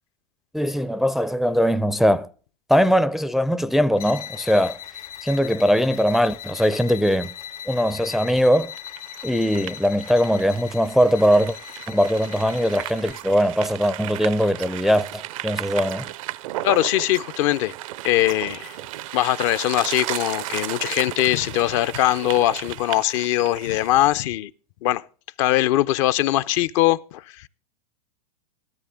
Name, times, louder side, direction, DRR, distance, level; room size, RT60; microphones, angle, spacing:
voice 1, 0.5-2.3 2.7-4.8 5.2-7.3 7.7-8.7 9.2-11.6 11.9-16.1, equal, ahead, 0.5 m, -20 dB
sound 1, 3.9-13.3, left 10 dB, 75° left, 1.8 m, -39 dB
sound 2, 8.7-24.2, right 15 dB, 60° right, 0.6 m, -34 dB
voice 2, 16.6-17.7 18.0-18.8 19.1-24.5 24.8-25.0 25.4-27.5, left 15 dB, 55° left, 0.6 m, -21 dB
13.5 x 13.0 x 3.6 m
hypercardioid pair, 105°, 19 cm